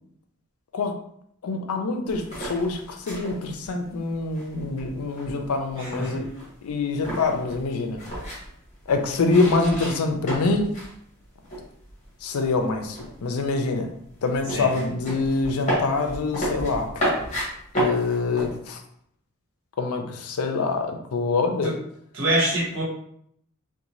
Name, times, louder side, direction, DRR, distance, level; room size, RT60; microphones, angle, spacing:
voice 1, 1.4-6.3 6.6-8.0 8.9-10.7 12.2-13.9 14.2-17.1 17.8-18.8 19.8-21.8, left 3 dB, 85° left, 5 dB, 0.4 m, -25 dB
sound 1, 2.1-11.0 11.2-12.1 12.4-18.6, equal, 35° left, 0.9 m, -32 dB
voice 2, 5.8-6.2 14.5-14.7 22.1-22.8, right 1 dB, 60° right, -5 dB, 1.1 m, -24 dB
2.6 x 2.2 x 3.0 m, 0.69 s
head